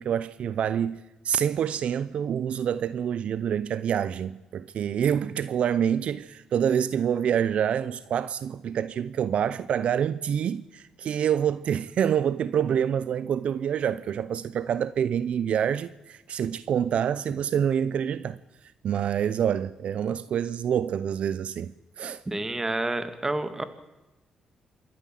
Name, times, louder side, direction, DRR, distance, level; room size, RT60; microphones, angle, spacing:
voice 1, 0.0-18.4 18.8-22.2, right 8 dB, 70° right, 0.6 m, -27 dB
voice 2, 22.3-23.6, right 2 dB, 20° right, 2.1 m, -29 dB
27.0 x 13.5 x 7.7 m
cardioid pair, 75°, 2 cm